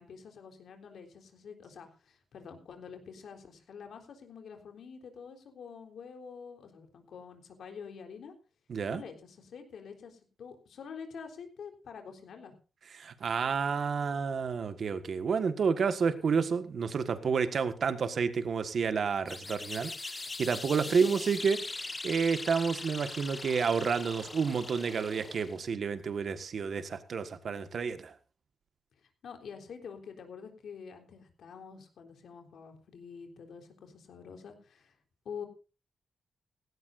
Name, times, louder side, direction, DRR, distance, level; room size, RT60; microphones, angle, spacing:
voice 1, 0.0-8.3 8.9-12.5 20.9-21.5 29.2-34.9 35.3-35.5, left 6 dB, 75° left, 5 dB, 3.8 m, -47 dB
voice 2, 8.7-9.0 12.9-28.1, right 5 dB, 55° right, 10 dB, 1.6 m, -30 dB
sound 1, 19.3-25.6, left 3 dB, 25° left, 1.4 m, -41 dB
17.5 x 16.5 x 2.6 m, 0.33 s
wide cardioid pair, 150°, 0 cm